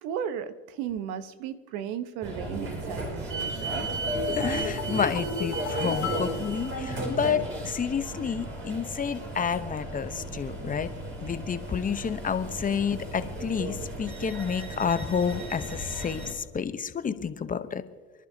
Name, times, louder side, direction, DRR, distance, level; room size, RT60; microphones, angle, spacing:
voice 1, 0.0-3.9, right 8 dB, 70° right, 12 dB, 1.1 m, -35 dB
sound 1, 2.2-16.3, right 2 dB, 40° right, 4.6 m, -34 dB
sound 2, 4.0-7.5 7.7-7.8, left 9 dB, 60° left, 3.2 m, -37 dB
voice 2, 4.3-10.9 11.2-17.8, left 7 dB, 25° left, 11 dB, 0.9 m, -30 dB
29.0 x 11.0 x 2.8 m, 1.3 s
supercardioid pair, 90°, 31 cm